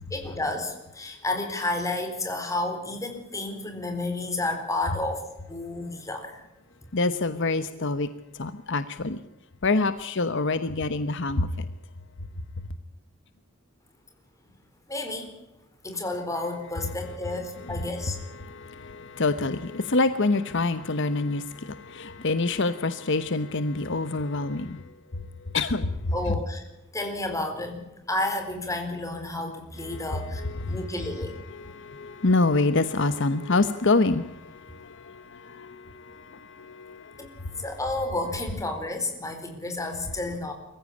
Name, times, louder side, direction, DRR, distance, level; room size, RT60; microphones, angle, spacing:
voice 1, 0.1-6.4 14.9-15.3 15.8-18.2 26.1-26.6 26.9-31.4 37.2-37.3 37.6-40.5, left 2 dB, 15° left, 4.2 m, -31 dB
voice 2, 6.9-8.1 8.3-9.2 9.6-11.7 17.7-17.8 18.4-24.8 25.1-26.4 29.9-31.1 31.5-37.6, left 3 dB, 60° left, 1.0 m, -27 dB
23.0 x 15.0 x 8.5 m
head